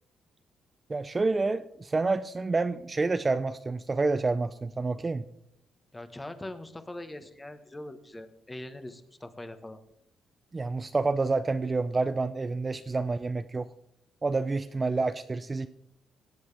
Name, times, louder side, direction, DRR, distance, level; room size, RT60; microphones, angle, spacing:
voice 1, 0.9-5.3 10.5-13.7 14.2-15.7, right 3 dB, 25° right, 11 dB, 0.4 m, -28 dB
voice 2, 5.9-9.8, left 1 dB, 15° left, 9 dB, 1.2 m, -42 dB
18.0 x 8.0 x 3.3 m, 0.72 s
cardioid pair, 90°, 0 cm